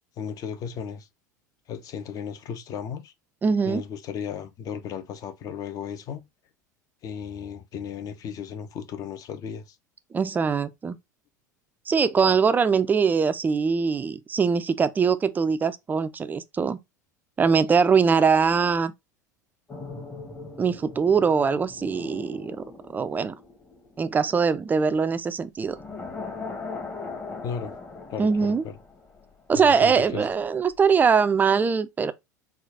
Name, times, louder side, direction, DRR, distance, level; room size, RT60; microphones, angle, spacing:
voice 1, 0.2-1.1 1.7-3.1 3.6-6.2 7.0-9.8 27.4-27.7 28.1-28.8 29.5-30.3, left 7 dB, 40° left, 0.7 m, -35 dB
voice 2, 3.4-3.8 10.1-11.0 11.9-16.8 17.4-18.9 20.6-22.6 22.9-23.4 24.0-25.8 28.2-28.6 29.5-32.1, right 5 dB, 20° right, 0.4 m, -22 dB
sound 1, 19.7-24.8 25.7-29.6 29.9-30.1, left 3 dB, 20° left, 1.1 m, -40 dB
3.9 x 2.4 x 3.4 m
figure-of-eight pair, 75°, 10 cm